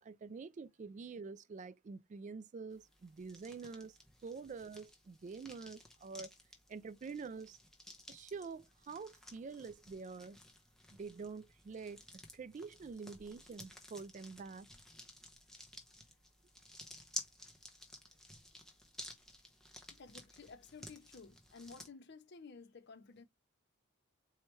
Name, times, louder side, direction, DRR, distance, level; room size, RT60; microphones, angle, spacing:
voice 1, 0.0-6.3 6.7-7.6 8.1-10.4 10.9-12.0 12.3-14.7, right 4 dB, 35° right, 0.3 m, -47 dB
sound 1, 2.7-21.9, left 1 dB, ahead, 0.8 m, -54 dB
voice 2, 19.9-23.2, left 4 dB, 50° left, 0.6 m, -54 dB
4.5 x 3.1 x 3.1 m
head